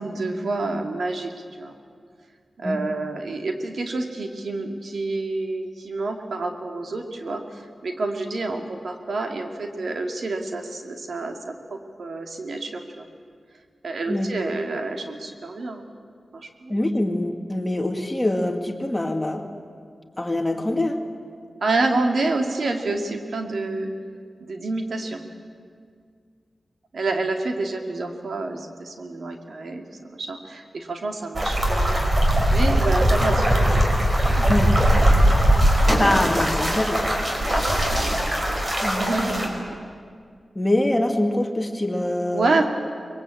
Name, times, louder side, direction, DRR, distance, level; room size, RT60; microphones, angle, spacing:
voice 1, 0.0-1.3 1.6-1.7 2.6-13.1 13.8-15.9 16.3-16.8 21.6-23.9 24.4-25.2 26.9-32.0 32.5-33.8 34.2-34.4 35.2-35.3 37.4-38.6 38.9-39.8 42.3-42.7, right 3 dB, 70° right, 4 dB, 2.5 m, -28 dB
voice 2, 16.7-19.5 20.2-21.0 34.5-34.7 35.8-37.1 38.8-39.6 40.6-42.7, left 1 dB, 15° left, 4 dB, 2.0 m, -24 dB
sound 1, 31.3-39.5, equal, 30° right, 4.6 m, -20 dB
23.5 x 22.0 x 8.6 m, 2.1 s
wide cardioid pair, 100°, 0 cm